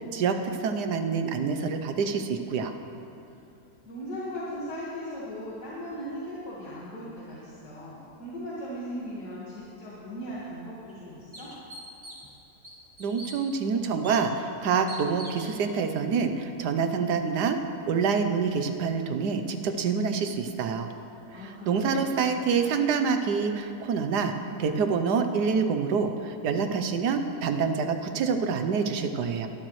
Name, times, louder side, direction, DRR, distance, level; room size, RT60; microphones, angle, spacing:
voice 1, 0.0-2.7 13.0-17.6 17.9-20.9 21.3-29.5, right 5 dB, 80° right, 7 dB, 1.4 m, -27 dB
voice 2, 3.8-11.5 21.3-22.3, equal, 85° left, -8 dB, 2.4 m, -38 dB
sound 1, 10.3-10.4 10.9-11.0 11.3-12.3 12.6-13.4 14.0-14.2 14.9-15.5, right 1 dB, 15° right, 2.1 m, -43 dB
21.5 x 12.0 x 3.2 m, 2.7 s
omnidirectional pair, 1.7 m